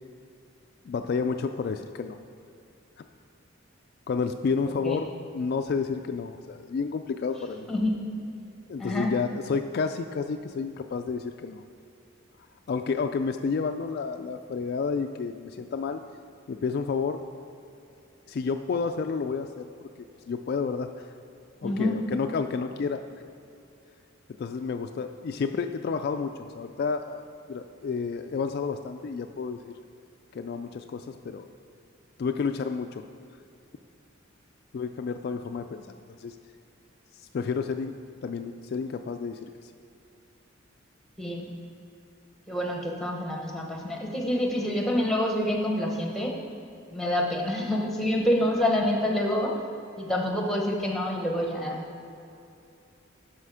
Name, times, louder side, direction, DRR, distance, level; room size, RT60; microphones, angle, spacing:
voice 1, 0.9-2.2 3.0-3.1 4.1-7.7 8.7-11.6 12.7-16.0 16.5-17.2 18.3-19.7 20.3-21.1 21.6-23.0 24.4-27.2 27.5-29.7 30.3-31.4 32.2-33.0 34.7-35.8 36.2-36.4 37.3-39.5, left 5 dB, 50° left, 7 dB, 0.3 m, -30 dB
voice 2, 7.7-8.0 8.8-9.1 21.6-22.0 41.2-41.5 42.5-46.3 46.9-49.6 50.0-51.8, left 1 dB, ahead, 0 dB, 1.0 m, -27 dB
12.0 x 5.1 x 4.9 m, 2.7 s
head